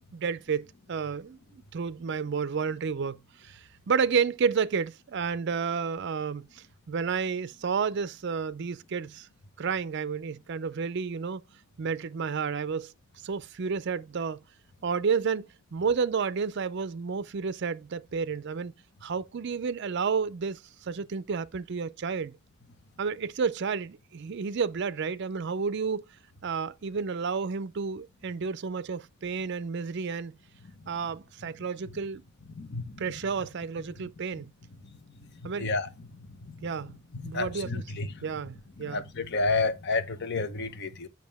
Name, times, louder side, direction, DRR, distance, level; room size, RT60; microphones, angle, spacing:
voice 1, 0.1-9.3 9.6-11.4 11.8-12.9 13.2-14.4 14.8-18.7 19.0-22.4 23.0-26.0 26.4-30.3 30.9-32.2 33.0-34.5 35.4-35.7 36.6-37.0 37.2-37.8 38.2-39.1, right 5 dB, 55° right, 0.5 m, -31 dB
voice 2, 32.6-33.0 35.6-35.9 37.1-38.1 38.8-41.1, left 3 dB, 55° left, 1.0 m, -30 dB
7.5 x 5.9 x 3.4 m
head